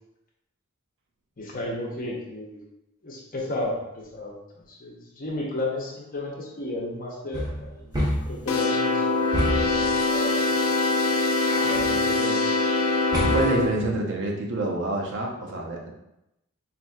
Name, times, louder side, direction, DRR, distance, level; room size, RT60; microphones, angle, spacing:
voice 1, 1.4-2.6 3.0-8.0 8.3-10.6 11.6-12.4, left 1 dB, 40° left, -3 dB, 0.8 m, -33 dB
sound 1, 7.3-8.5 9.3-9.9 11.5-12.0 13.1-13.7, equal, 20° right, 0.6 m, -28 dB
sound 2, 8.5-13.7, left 3 dB, 80° left, 0.6 m, -23 dB
voice 2, 13.2-15.9, right 2 dB, 60° right, 0 dB, 0.6 m, -27 dB
4.1 x 2.7 x 2.3 m, 0.87 s
head